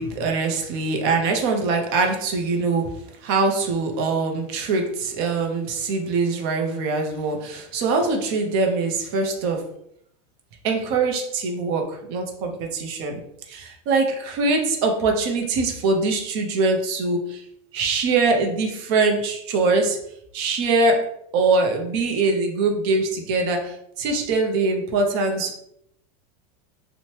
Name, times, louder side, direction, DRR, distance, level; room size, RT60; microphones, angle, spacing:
voice 1, 0.0-9.7 10.6-13.2 13.5-17.4 17.7-20.0 20.3-25.6, right 3 dB, 40° right, 3 dB, 0.5 m, -23 dB
2.8 x 2.1 x 3.0 m, 0.73 s
supercardioid pair, 175°, 20 cm